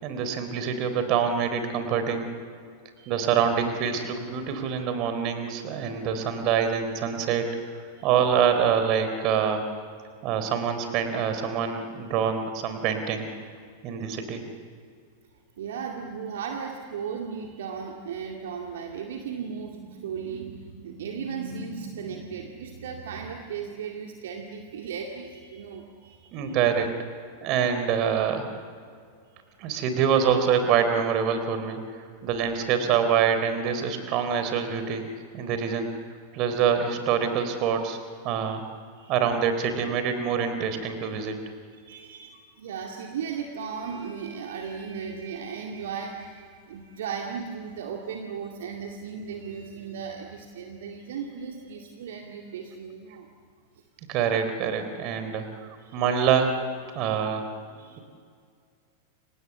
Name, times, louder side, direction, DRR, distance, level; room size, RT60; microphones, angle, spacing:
voice 1, 0.0-2.3 3.1-9.6 10.2-13.2 13.8-14.4 26.3-26.9 27.4-28.5 29.6-35.0 35.3-35.9 36.3-38.0 38.2-38.6 39.1-41.4 54.1-55.5 55.9-56.6 56.9-57.5, right 7 dB, 40° right, 8 dB, 3.7 m, -25 dB
voice 2, 3.0-3.4 7.9-8.1 15.6-26.6 29.2-29.4 39.0-39.2 41.8-53.3 55.8-56.0 56.9-57.0 57.7-58.0, right 6 dB, 60° right, 2 dB, 2.2 m, -36 dB
30.0 x 26.0 x 7.2 m, 2.1 s
figure-of-eight pair, 90°, 0 cm